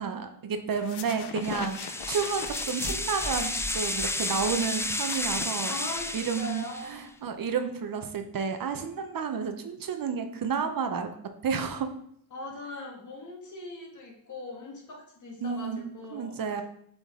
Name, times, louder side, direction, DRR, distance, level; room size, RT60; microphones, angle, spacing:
voice 1, 0.0-5.8 6.1-11.1 11.4-11.9 15.4-15.8 16.1-16.6, right 6 dB, 50° right, 7 dB, 0.8 m, -31 dB
sound 1, 0.7-6.1, left 10 dB, 70° left, 0.6 m, -42 dB
sound 2, 1.4-7.0, left 1 dB, 5° left, 0.4 m, -32 dB
voice 2, 5.7-7.0 12.3-16.6, left 2 dB, 45° left, 0 dB, 1.9 m, -40 dB
7.4 x 3.8 x 3.6 m, 0.69 s
cardioid pair, 80°, 42 cm